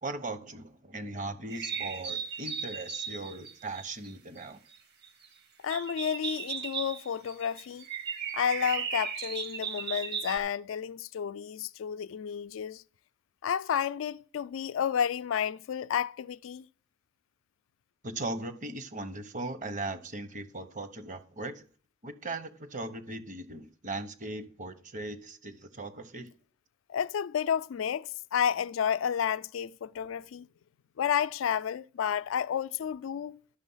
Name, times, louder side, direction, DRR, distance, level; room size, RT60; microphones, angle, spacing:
voice 1, 0.0-4.6 18.0-21.6 22.0-26.3, right 2 dB, 40° right, 0.9 m, -38 dB
sound 1, 1.5-4.4 4.7-4.8 5.0-5.3 5.7-10.4, right 6 dB, 55° right, 1.4 m, -36 dB
voice 2, 5.6-7.9 8.3-12.8 13.4-16.7 26.9-30.5 31.0-33.4, left 8 dB, 85° left, 0.3 m, -31 dB
11.5 x 6.2 x 5.6 m
head